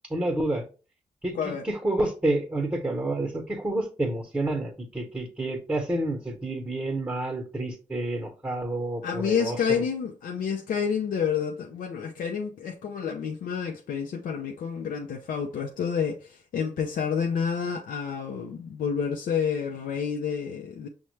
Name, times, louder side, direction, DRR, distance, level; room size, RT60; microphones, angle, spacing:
voice 1, 0.1-0.6 1.2-9.8, right 1 dB, 10° right, 0.9 m, -29 dB
voice 2, 9.0-20.9, left 7 dB, 85° left, 0.4 m, -29 dB
5.6 x 2.1 x 3.1 m
cardioid pair, 65°, 14 cm